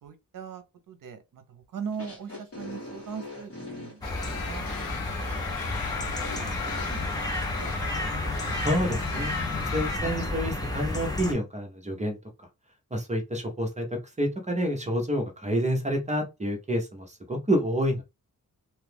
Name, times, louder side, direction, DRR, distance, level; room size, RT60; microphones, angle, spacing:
voice 1, 0.0-5.0 6.0-6.6 6.9-7.3 8.3-8.6, right 6 dB, 70° right, 0.8 m, -41 dB
sound 1, 1.9-7.8, left 1 dB, 45° left, 1.6 m, -43 dB
sound 2, 4.0-10.0, left 7 dB, 85° left, 0.6 m, -37 dB
sound 3, 4.0-11.3, left 2 dB, 10° left, 0.7 m, -31 dB
voice 2, 8.6-12.2 12.9-13.9 14.2-18.0, equal, 20° right, 0.8 m, -28 dB
2.8 x 2.4 x 3.4 m
wide cardioid pair, 150°, 34 cm